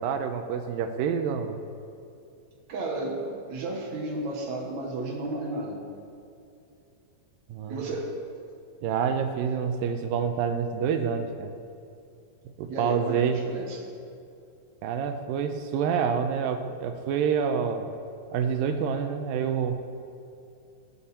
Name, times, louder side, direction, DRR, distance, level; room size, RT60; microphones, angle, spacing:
voice 1, 0.0-1.6 7.5-7.8 8.8-11.5 12.6-13.4 14.8-18.0 18.3-19.7, right 7 dB, 75° right, 7 dB, 2.4 m, -27 dB
voice 2, 2.7-5.8 7.7-8.1 12.6-13.8, right 2 dB, 55° right, 0 dB, 2.5 m, -33 dB
15.5 x 10.5 x 4.3 m, 2.5 s
omnidirectional pair, 4.3 m